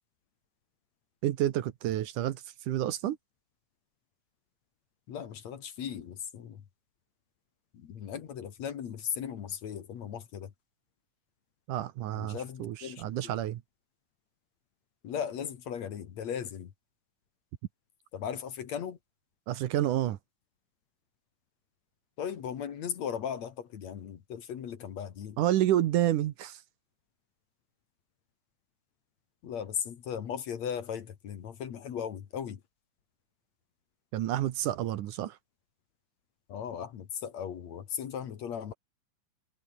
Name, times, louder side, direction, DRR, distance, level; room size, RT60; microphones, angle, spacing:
voice 1, 1.2-3.2 11.7-13.6 19.5-20.2 25.4-26.6 34.1-35.4, right 13 dB, 70° right, 2.5 m, -29 dB
voice 2, 5.1-6.6 7.7-10.5 12.1-13.4 15.0-16.7 18.1-19.0 22.2-25.4 29.4-32.6 36.5-38.7, left 8 dB, 55° left, 2.7 m, -37 dB
omnidirectional pair, 4.0 m